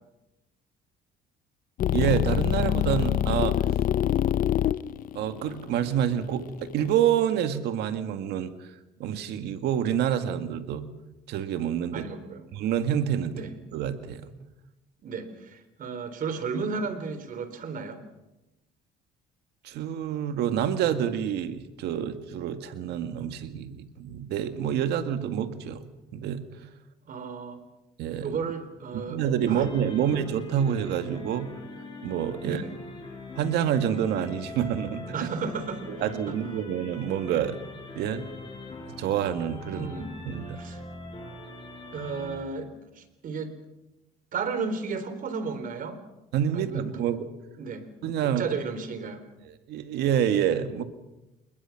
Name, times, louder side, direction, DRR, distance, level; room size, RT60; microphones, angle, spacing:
sound 1, 1.8-6.9, left 11 dB, 55° left, 0.7 m, -25 dB
voice 1, 1.9-3.6 5.2-8.5 9.0-10.9 11.3-12.1 12.5-13.3 13.7-14.3 19.6-25.8 26.1-26.4 28.0-28.4 28.9-31.5 32.0-32.6 33.3-35.3 35.9-37.6 38.0-38.3 39.0-39.9 40.3-40.6 46.3-47.3 48.0-48.4 49.5-50.8, right 9 dB, 80° right, 8 dB, 2.0 m, -27 dB
voice 2, 11.9-12.4 13.3-13.5 15.0-18.0 27.1-27.6 28.2-29.7 30.0-30.1 32.4-32.7 35.1-36.4 39.7-40.1 40.6-40.8 41.9-43.5 44.3-46.0 46.5-47.0 47.6-47.9 48.2-49.2, right 5 dB, 55° right, 10 dB, 3.9 m, -34 dB
sound 2, 29.4-42.4, left 2 dB, 30° left, 7.8 m, -42 dB
28.0 x 21.0 x 6.0 m, 0.99 s
cardioid pair, 110°, 17 cm